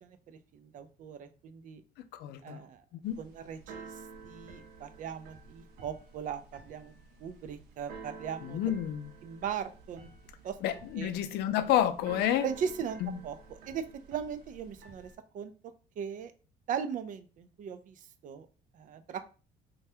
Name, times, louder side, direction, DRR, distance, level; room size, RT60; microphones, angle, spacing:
voice 1, 0.0-1.8 2.4-2.8 3.2-4.0 4.2-6.9 7.2-8.6 9.2-10.1 10.4-10.6 11.0-11.1 12.4-13.4 13.7-15.1 15.3-16.3 16.7-18.5 18.7-19.3, right 7 dB, 50° right, 0.4 m, -39 dB
voice 2, 2.1-2.6 3.0-3.2 8.4-9.1 10.6-12.5 13.0-13.2, left 11 dB, 80° left, 0.4 m, -29 dB
Keyboard (musical), 3.0-15.2, right 4 dB, 90° right, 0.6 m, -51 dB
2.7 x 2.2 x 3.2 m
cardioid pair, 110°, 17 cm